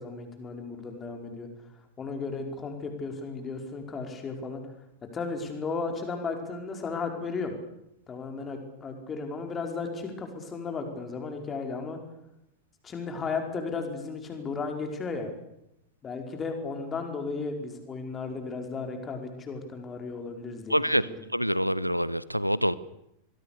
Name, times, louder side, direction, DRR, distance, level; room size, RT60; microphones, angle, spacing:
voice 1, 0.0-1.5 2.0-4.6 5.1-7.6 8.1-12.0 12.8-15.3 16.0-21.2, left 4 dB, 20° left, 4 dB, 5.2 m, -35 dB
voice 2, 20.7-22.7, equal, 90° right, 19 dB, 0.8 m, -26 dB
26.0 x 21.5 x 6.9 m, 0.84 s
figure-of-eight pair, 90°, 0 cm